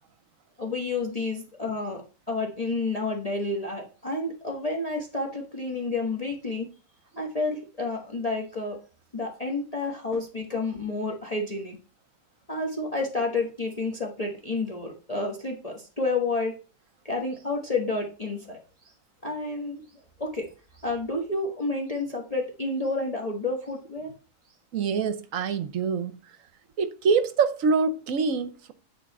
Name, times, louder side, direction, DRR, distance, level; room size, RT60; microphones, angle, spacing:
voice 1, 0.6-6.7 7.2-8.8 9.1-11.8 12.5-16.6 17.0-18.9 19.2-20.5 20.7-24.1, left 3 dB, 25° left, 1.2 m, -30 dB
voice 2, 24.7-26.2 26.8-28.7, right 5 dB, 60° right, 1.1 m, -25 dB
10.0 x 4.0 x 5.3 m
omnidirectional pair, 1.7 m